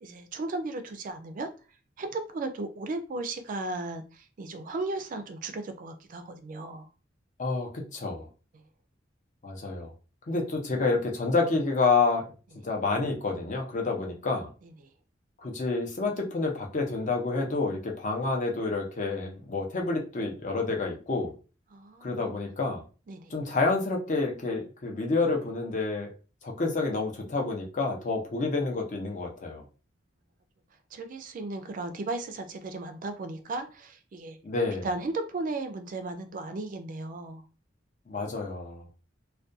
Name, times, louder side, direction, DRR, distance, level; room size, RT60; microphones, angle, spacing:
voice 1, 0.0-1.5 2.0-6.9 14.6-14.7 21.7-22.3 23.1-23.3 30.9-34.4 34.8-37.4, right 2 dB, 45° right, 8 dB, 0.3 m, -35 dB
voice 2, 7.4-8.3 9.4-9.9 10.3-12.2 12.6-14.5 15.4-21.3 22.0-22.8 23.3-26.1 26.4-29.6 34.4-34.9 38.1-38.8, left 3 dB, 40° left, 1 dB, 0.6 m, -28 dB
2.3 x 2.2 x 2.6 m, 0.34 s
head